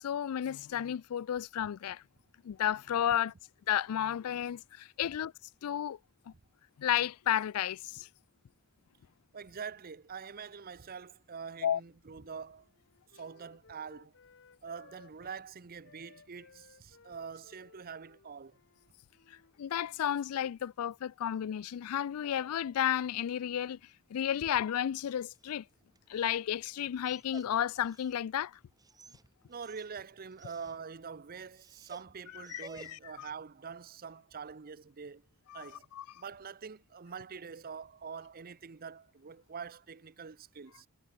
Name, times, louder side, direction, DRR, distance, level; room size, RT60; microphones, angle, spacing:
voice 1, 0.0-2.0 2.4-3.3 3.7-5.3 5.6-6.0 6.3-6.4 6.8-8.1 11.6-11.8 19.3-23.8 24.1-25.6 26.1-28.6 32.5-33.3 35.5-35.6 35.9-36.0, left 10 dB, 85° left, 0.4 m, -32 dB
voice 2, 9.3-12.7 13.1-14.1 14.6-18.6 29.5-35.2 35.5-35.9 36.1-40.9, right 6 dB, 45° right, 0.7 m, -45 dB
Wind instrument woodwind instrument, 11.5-15.5 15.8-20.3, left 5 dB, 60° left, 0.9 m, -61 dB
Dog, 25.0-33.3, right 3 dB, 15° right, 1.8 m, -57 dB
head